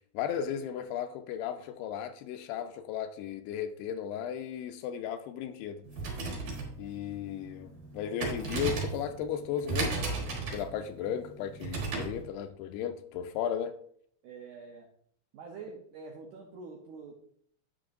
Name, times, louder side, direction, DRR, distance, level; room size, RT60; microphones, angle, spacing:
voice 1, 0.1-5.8 6.8-10.1 10.5-13.8, left 9 dB, 85° left, 2.6 m, -35 dB
sound 1, 5.8-12.2, right 3 dB, 55° right, 2.5 m, -35 dB
voice 2, 14.2-14.9 15.3-17.1, right 4 dB, 75° right, 1.9 m, -46 dB
9.7 x 6.7 x 2.6 m
omnidirectional pair, 4.6 m